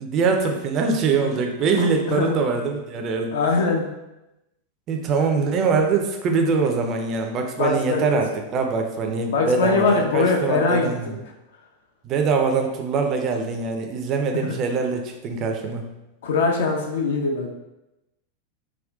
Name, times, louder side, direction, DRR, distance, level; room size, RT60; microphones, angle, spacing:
voice 1, 0.0-3.3 4.9-11.2 12.0-15.9, right 4 dB, 35° right, 4 dB, 0.4 m, -23 dB
voice 2, 1.8-2.4 3.3-3.9 7.6-8.2 9.3-10.9 14.3-14.5 16.2-17.5, left 4 dB, 60° left, 1 dB, 0.5 m, -22 dB
3.6 x 2.3 x 2.4 m, 0.94 s
figure-of-eight pair, 90°, 0 cm